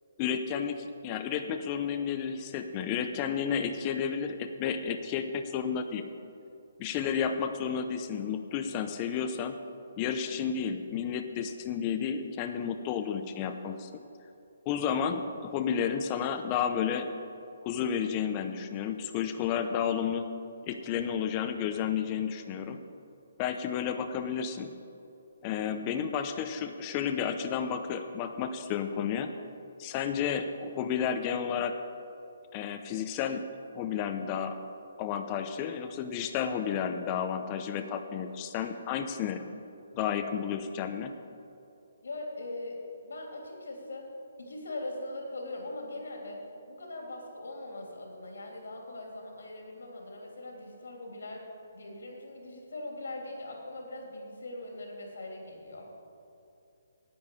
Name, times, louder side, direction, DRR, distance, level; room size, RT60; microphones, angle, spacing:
voice 1, 0.2-6.0 6.8-9.6 10.0-13.9 14.6-17.1 17.6-20.2 20.6-22.8 23.4-24.7 25.4-29.3 29.8-31.8 32.5-33.4 33.7-34.6 35.0-39.4 40.0-41.1, left 7 dB, 30° left, 7 dB, 0.7 m, -31 dB
voice 2, 42.0-42.8 43.0-44.1 44.4-46.4 46.7-51.4 51.7-55.9, left 2 dB, 80° left, 0 dB, 3.3 m, -41 dB
10.5 x 8.7 x 8.4 m, 2.7 s
hypercardioid pair, 150°, 0 cm